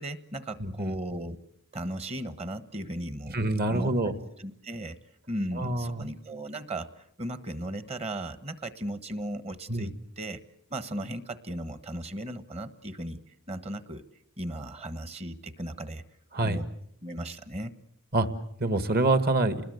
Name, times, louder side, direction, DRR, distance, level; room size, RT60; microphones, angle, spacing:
voice 1, 0.0-1.4 1.7-3.4 3.7-3.9 4.4-5.0 5.3-10.4 10.7-13.2 13.5-14.0 14.4-16.0 16.4-16.7 17.0-17.8, right 1 dB, 30° right, 12 dB, 1.3 m, -36 dB
voice 2, 0.6-1.0 3.3-4.2 5.6-6.0 9.7-9.9 16.3-16.6 18.1-18.3 18.6-19.6, right 2 dB, 45° right, 10 dB, 1.7 m, -26 dB
29.0 x 20.5 x 8.0 m, 0.73 s
head